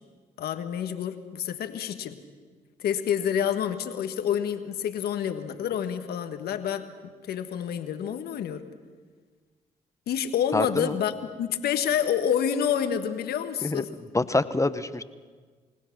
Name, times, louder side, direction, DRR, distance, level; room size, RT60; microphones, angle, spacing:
voice 1, 0.4-2.2 2.8-6.8 7.3-8.6 10.1-11.1 11.4-13.9, left 9 dB, 80° left, 8 dB, 1.5 m, -28 dB
voice 2, 10.5-11.0 13.6-15.0, left 2 dB, 20° left, 12 dB, 1.1 m, -26 dB
30.0 x 17.0 x 6.1 m, 1.5 s
supercardioid pair, 55°, 16 cm